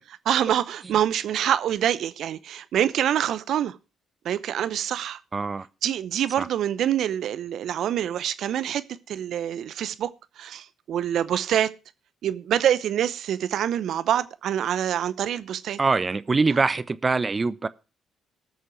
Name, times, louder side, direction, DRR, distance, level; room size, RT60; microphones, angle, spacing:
voice 1, 0.3-3.8 4.2-5.2 5.8-10.1 10.4-11.7 12.2-15.8, right 10 dB, 65° right, 0.7 m, -25 dB
voice 2, 5.3-5.7 6.4-6.5 15.8-17.7, right 4 dB, 35° right, 0.8 m, -23 dB
18.5 x 6.5 x 4.5 m
hypercardioid pair, 45°, 0 cm